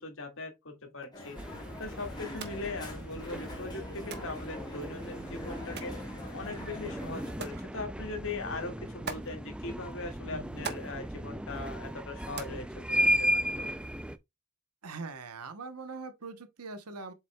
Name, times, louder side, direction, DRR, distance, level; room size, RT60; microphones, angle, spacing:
voice 1, 0.0-1.4 1.8-6.0 6.3-13.7, left 3 dB, 60° left, 2.1 m, -40 dB
Crowd, 1.1-7.4, left 2 dB, 20° left, 3.6 m, -45 dB
sound 1, 1.4-14.2, right 1 dB, 5° right, 0.4 m, -35 dB
sound 2, 2.2-13.7, right 5 dB, 50° right, 1.2 m, -48 dB
voice 2, 10.3-10.7 14.8-17.1, right 4 dB, 85° right, 1.0 m, -42 dB
7.7 x 5.8 x 2.3 m
head